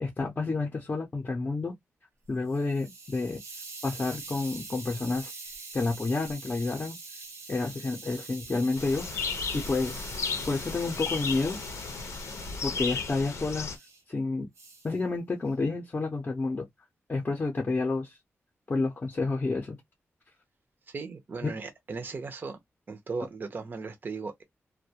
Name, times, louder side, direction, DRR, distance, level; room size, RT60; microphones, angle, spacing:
voice 1, 0.0-1.7 2.3-3.4 3.8-5.3 5.7-7.0 7.5-9.2 9.5-10.1 10.5-11.6 12.6-13.7 14.1-14.5 14.8-16.7 17.1-18.2 18.7-19.8 21.4-21.5, left 3 dB, 30° left, 0.5 m, -30 dB
Hiss, 2.3-14.0 14.6-14.9, right 3 dB, 85° right, 1.0 m, -45 dB
sound 1, 8.8-13.8, left 5 dB, 85° left, 0.6 m, -34 dB
voice 2, 20.9-22.6 22.9-24.4, right 4 dB, 45° right, 0.5 m, -37 dB
2.4 x 2.2 x 2.7 m
wide cardioid pair, 145°, 5 cm